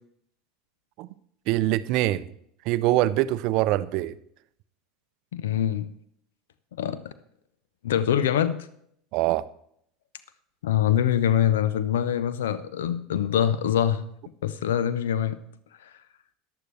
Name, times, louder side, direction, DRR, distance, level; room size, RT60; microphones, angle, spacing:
voice 1, 1.5-2.3 2.7-4.1 9.1-9.4, right 15 dB, 55° right, 0.5 m, -23 dB
voice 2, 5.3-5.9 6.8-7.1 7.8-8.7 10.6-14.0 14.4-15.4 15.8-15.9, left 10 dB, 70° left, 0.5 m, -24 dB
14.5 x 11.0 x 3.2 m
figure-of-eight pair, 75°, 0 cm